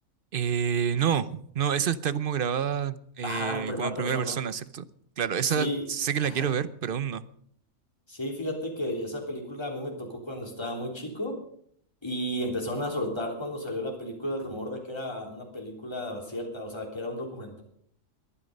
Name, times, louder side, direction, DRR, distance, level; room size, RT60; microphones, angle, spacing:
voice 1, 0.3-4.8 5.2-7.2, right 8 dB, 50° right, 15 dB, 0.8 m, -28 dB
voice 2, 3.2-4.4 5.4-5.8 6.2-6.6 8.1-11.4 12.0-17.6, left 1 dB, 20° left, 0 dB, 3.5 m, -33 dB
22.0 x 10.0 x 5.3 m, 0.64 s
omnidirectional pair, 1.4 m